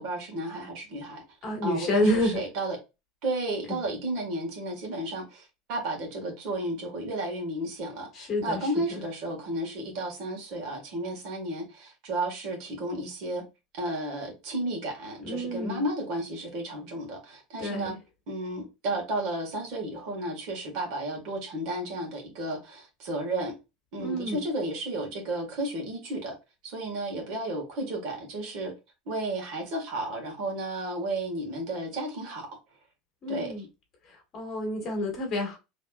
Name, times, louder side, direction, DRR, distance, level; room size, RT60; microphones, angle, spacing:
voice 1, 0.0-1.2 1.6-2.8 3.2-13.4 13.7-17.9 18.3-23.5 23.9-26.3 26.6-28.7 29.0-32.5 33.3-33.7, right 1 dB, 50° right, 1.8 m, -33 dB
voice 2, 1.4-2.4 3.7-3.8 8.1-9.0 15.2-15.8 17.6-18.0 24.0-24.5 33.2-33.7 34.1-35.6, left 1 dB, 35° left, 1.6 m, -29 dB
4.4 x 3.3 x 2.4 m
supercardioid pair, 160°, 0 cm